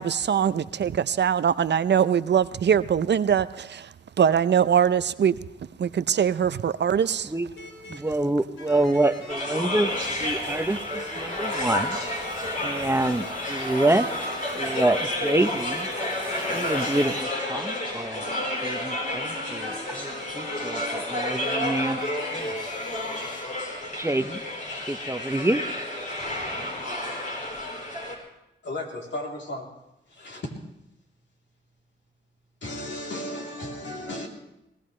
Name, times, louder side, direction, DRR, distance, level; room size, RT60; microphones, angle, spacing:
voice 1, 0.0-3.9 4.2-5.3 5.8-7.3 10.4-10.6, right 8 dB, 65° right, 0.6 m, -22 dB
sound 1, 7.6-8.0 8.6-9.3 9.7-10.6 11.1-11.6 11.9-12.3 12.7-13.7 14.0-15.5 16.3-21.0 21.4-21.6 22.0-23.4, left 3 dB, 85° left, 3.3 m, -43 dB
voice 2, 7.9-9.9 10.2-12.0 12.6-14.0 14.6-15.9 16.5-18.2 18.6-22.5 24.0-24.4 24.9-25.6, right 1 dB, 15° right, 0.9 m, -26 dB
sound 2, 9.3-28.2, left 1 dB, 40° left, 4.2 m, -30 dB
sound 3, 9.8-17.2, equal, 10° left, 3.9 m, -43 dB
voice 3, 28.6-29.7 30.0-30.5 32.6-34.3, left 1 dB, 70° left, 3.4 m, -34 dB
21.5 x 17.5 x 3.3 m
cardioid pair, 55°, 20 cm